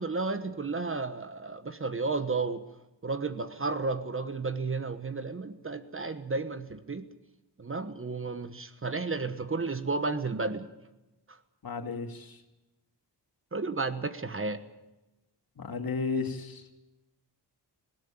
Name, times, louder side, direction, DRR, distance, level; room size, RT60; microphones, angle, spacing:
voice 1, 0.0-2.6 3.0-7.0 7.6-10.7 13.5-14.6, right 3 dB, 30° right, 10 dB, 1.2 m, -32 dB
voice 2, 11.6-12.4 15.6-16.6, left 4 dB, 55° left, 5 dB, 2.5 m, -33 dB
19.0 x 17.5 x 8.9 m, 1.0 s
wide cardioid pair, 100°, 42 cm